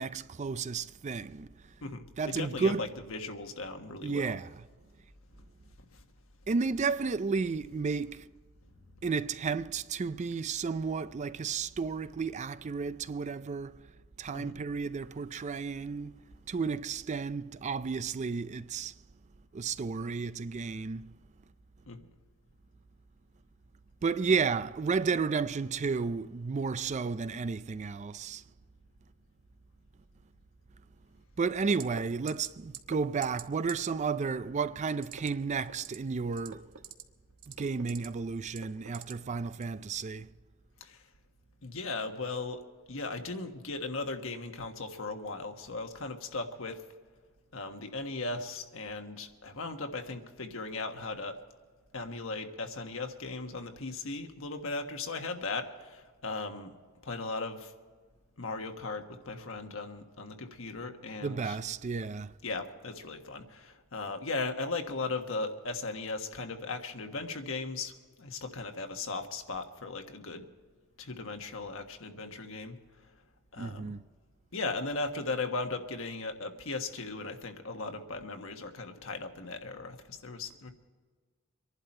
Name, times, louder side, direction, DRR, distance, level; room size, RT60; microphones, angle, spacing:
voice 1, 0.0-1.5 2.2-2.9 4.0-4.6 6.5-8.2 9.0-13.7 14.2-16.1 16.5-18.9 19.5-21.1 24.0-28.4 31.4-36.6 37.6-40.3 61.2-62.3 73.6-74.0, right 5 dB, 35° right, 0.4 m, -32 dB
voice 2, 1.8-4.4 5.9-6.0 14.3-14.6 21.9-22.0 40.8-41.0 41.6-42.6 42.9-46.8 47.5-51.4 51.9-56.7 57.0-57.7 58.4-61.6 62.4-67.9 68.2-70.4 71.0-73.1 73.5-73.9 74.5-80.7, left 3 dB, 70° left, 1.4 m, -37 dB
sound 1, 31.8-32.0 32.3-32.5 32.7-33.0 33.2-33.4 33.7-33.8 35.0-35.3 35.7-36.0 36.3-37.0 37.4-38.1 38.5-39.1 39.5-39.7, right 8 dB, 80° right, 1.0 m, -43 dB
25.0 x 11.5 x 4.4 m
head